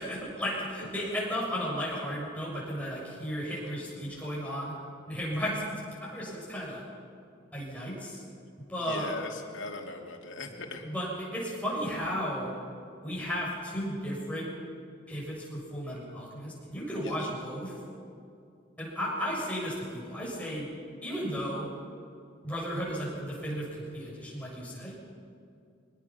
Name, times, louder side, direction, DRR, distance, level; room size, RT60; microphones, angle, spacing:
voice 1, 0.0-4.7 5.1-6.8 7.5-8.2 8.7-9.1 10.8-12.6 13.0-14.5 15.1-17.7 18.8-20.7 21.0-21.7 22.4-24.9, equal, 5° left, -6 dB, 7.0 m, -34 dB
voice 2, 0.8-1.1 8.8-10.9 17.0-17.3, left 3 dB, 80° left, 2 dB, 2.8 m, -40 dB
24.5 x 20.0 x 5.9 m, 2.5 s
head